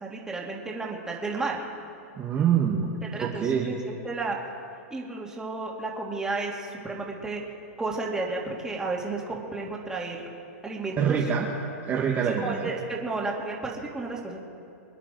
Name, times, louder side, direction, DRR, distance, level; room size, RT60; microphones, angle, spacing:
voice 1, 0.0-1.6 3.1-4.4 4.9-7.4 7.8-10.3 10.6-11.2 12.3-14.4, right 3 dB, 10° right, -2 dB, 2.4 m, -32 dB
voice 2, 2.2-3.7 11.0-11.4 11.9-12.7, right 7 dB, 25° right, -3 dB, 1.4 m, -25 dB
26.0 x 10.0 x 4.6 m, 2.6 s
hypercardioid pair, 135°, 8 cm